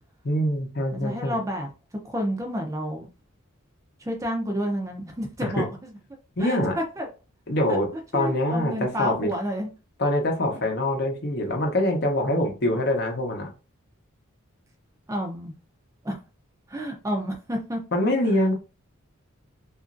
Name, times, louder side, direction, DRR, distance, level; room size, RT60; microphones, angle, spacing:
voice 1, 0.2-1.4 5.4-5.6 6.4-6.8 7.5-9.3 10.0-13.5 17.9-18.5, left 1 dB, 50° left, 0.7 m, -24 dB
voice 2, 0.9-1.7 2.0-3.1 4.0-5.9 6.4-7.1 8.1-9.7 15.1-15.6 16.0-16.1 16.7-17.8, equal, 15° right, 0.5 m, -30 dB
2.9 x 2.4 x 2.5 m
head